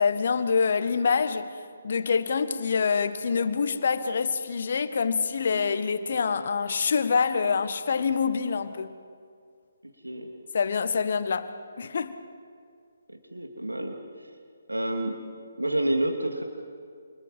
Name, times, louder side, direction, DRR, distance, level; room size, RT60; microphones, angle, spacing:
voice 1, 0.0-1.5 1.8-9.0 10.5-11.5 11.8-12.1, left 5 dB, 45° left, 1.5 m, -26 dB
voice 2, 13.1-13.9 14.7-15.1 15.6-16.4, right 1 dB, 80° right, 3.1 m, -28 dB
29.5 x 28.0 x 5.6 m
figure-of-eight pair, 140°, 0 cm